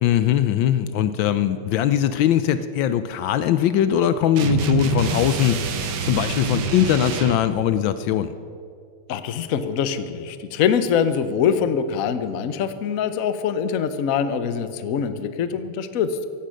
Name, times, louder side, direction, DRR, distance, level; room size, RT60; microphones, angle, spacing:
voice 1, 0.0-8.3, left 10 dB, 75° left, 12 dB, 1.2 m, -21 dB
sound 1, 4.4-7.5, right 5 dB, 60° right, 1.5 m, -26 dB
voice 2, 9.1-16.2, left 7 dB, 60° left, 11 dB, 0.9 m, -24 dB
16.0 x 11.5 x 6.3 m, 2.3 s
omnidirectional pair, 2.3 m